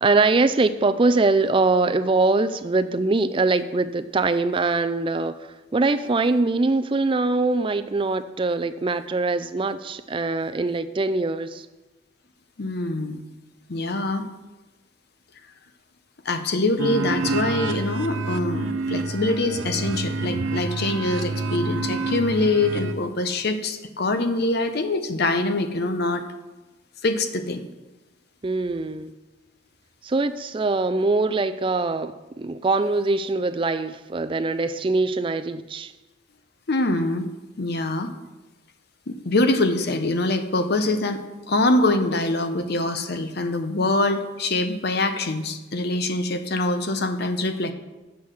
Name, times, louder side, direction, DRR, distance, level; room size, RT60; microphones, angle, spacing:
voice 1, 0.0-11.7 28.4-29.1 30.0-35.9, right 3 dB, 25° right, 11 dB, 0.4 m, -23 dB
voice 2, 12.6-13.2 13.7-14.3 16.2-26.3 27.0-27.6 36.7-37.3 37.6-38.1 39.1-47.7, left 2 dB, 50° left, 8 dB, 0.7 m, -24 dB
sound 1, 16.8-22.9, right 3 dB, 70° right, 0.7 m, -28 dB
7.6 x 7.1 x 6.3 m, 1.1 s
head